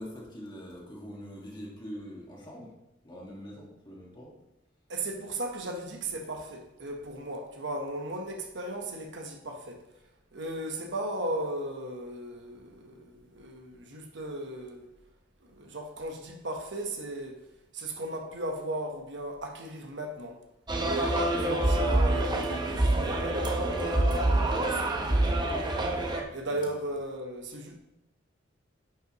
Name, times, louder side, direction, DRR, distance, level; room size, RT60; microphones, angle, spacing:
voice 1, 0.0-2.7 3.0-4.3 26.5-26.6, equal, 25° left, 1.7 m, -43 dB
voice 2, 4.9-9.8 10.3-14.9 15.4-17.4 17.7-20.4 20.8-25.7 26.3-27.8, right 1 dB, 65° right, 1.1 m, -36 dB
sound 1, 20.7-26.2, right 1 dB, 25° right, 0.8 m, -26 dB
9.9 x 5.5 x 3.0 m
head